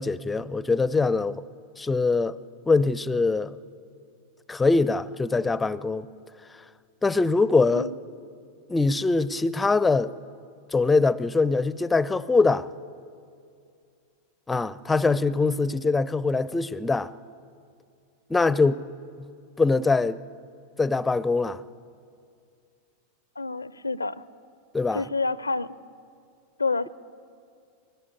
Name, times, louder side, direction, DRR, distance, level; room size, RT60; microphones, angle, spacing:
voice 1, 0.0-1.4 1.8-2.4 2.7-3.6 4.5-6.1 7.0-7.9 8.7-10.1 10.7-12.7 14.5-17.1 18.3-18.8 19.6-20.2 20.8-21.6 24.7-25.0, left 3 dB, 10° left, 0.5 m, -23 dB
voice 2, 23.4-24.2 24.9-25.7 26.6-26.9, left 3 dB, 80° left, 0.5 m, -28 dB
22.5 x 19.5 x 8.6 m
figure-of-eight pair, 90°, 0 cm